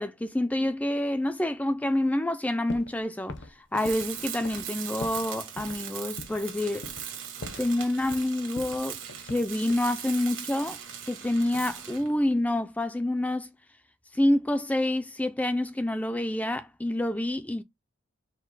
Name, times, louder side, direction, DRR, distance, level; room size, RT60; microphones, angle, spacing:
voice 1, 0.0-3.4 3.7-6.9 7.6-10.8 11.1-13.5 14.1-17.6, left 1 dB, 5° left, 0.3 m, -27 dB
sound 1, 2.7-3.0 3.3-5.3 5.6-5.8 6.2-6.5 6.8-7.1 7.4-8.3 8.6-9.9 10.9-11.8 12.1-12.5, left 2 dB, 60° left, 0.7 m, -42 dB
Tools, 3.8-12.1, right 9 dB, 75° right, 1.4 m, -39 dB
4.9 x 2.1 x 3.9 m
head